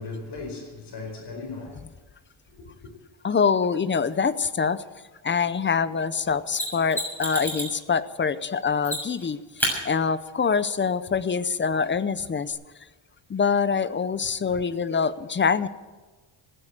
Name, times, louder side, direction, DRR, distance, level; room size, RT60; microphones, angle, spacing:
voice 1, 0.0-1.8 2.5-2.9, left 3 dB, 55° left, 4.8 m, -37 dB
voice 2, 3.2-4.8 5.2-12.6 13.3-15.7, left 6 dB, 25° left, 0.7 m, -25 dB
Mechanisms, 6.5-7.8 8.8-9.2 9.6-9.8 12.5-12.6, equal, 5° left, 6.4 m, -28 dB
15.5 x 9.9 x 9.0 m
cardioid pair, 125°, 49 cm